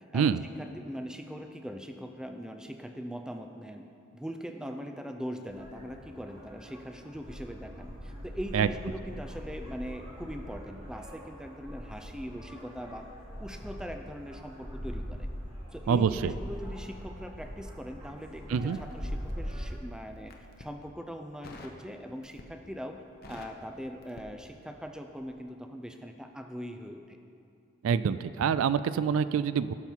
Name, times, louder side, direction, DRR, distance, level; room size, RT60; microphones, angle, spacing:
voice 1, 0.1-3.9 4.1-13.1 13.4-15.3 15.7-27.2, equal, 5° right, 5 dB, 0.4 m, -41 dB
sound 1, 5.5-19.8, equal, 25° right, 1.6 m, -42 dB
voice 2, 15.9-16.3 18.5-18.8 27.8-29.7, right 7 dB, 80° right, 14 dB, 0.3 m, -26 dB
Crackle, 18.5-19.6 20.2-20.8 21.4-21.8 22.2-22.7 23.0-24.9 25.2-25.4, left 2 dB, 45° left, 0.8 m, -49 dB
17.0 x 5.8 x 4.5 m, 2.6 s
head